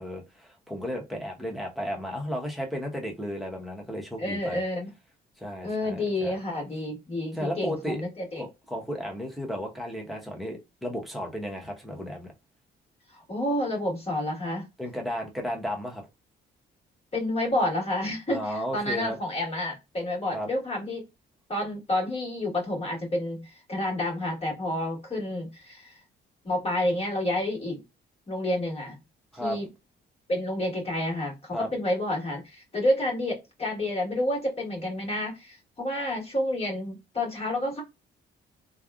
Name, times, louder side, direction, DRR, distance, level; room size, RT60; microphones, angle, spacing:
voice 1, 0.0-4.6 5.4-6.4 7.3-8.0 8.4-12.3 14.8-16.1 18.3-19.2 20.3-20.5 29.3-29.6 31.5-31.7, equal, ahead, 1.1 m, -34 dB
voice 2, 4.2-4.9 5.6-8.5 13.3-14.7 17.1-21.0 21.5-26.0 26.4-27.8 28.3-29.0 29.4-29.7 30.3-37.8, left 1 dB, 30° left, 1.7 m, -29 dB
3.4 x 2.3 x 2.4 m
cardioid pair, 90°, 20 cm